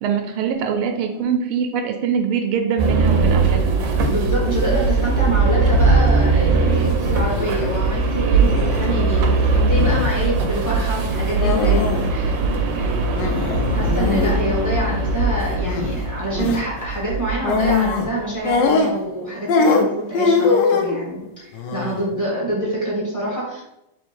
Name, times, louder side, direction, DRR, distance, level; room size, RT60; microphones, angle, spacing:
voice 1, 0.0-3.8, right 7 dB, 85° right, 5 dB, 1.4 m, -23 dB
sound 1, 2.8-17.9, right 3 dB, 70° right, 1.1 m, -20 dB
voice 2, 4.1-12.4 12.7-13.1 13.7-23.6, right 1 dB, 10° left, -5 dB, 1.3 m, -26 dB
sound 2, 6.7-6.9 7.3-7.7 8.4-8.8 9.7-10.1 11.4-12.1 12.3-12.4 13.2-14.4 15.6-16.0 16.3-16.6 17.4-18.1 18.4-19.2 19.5-21.0 21.5-22.0, left 4 dB, 75° left, 1.1 m, -21 dB
3.5 x 3.0 x 4.4 m, 0.84 s
omnidirectional pair, 2.3 m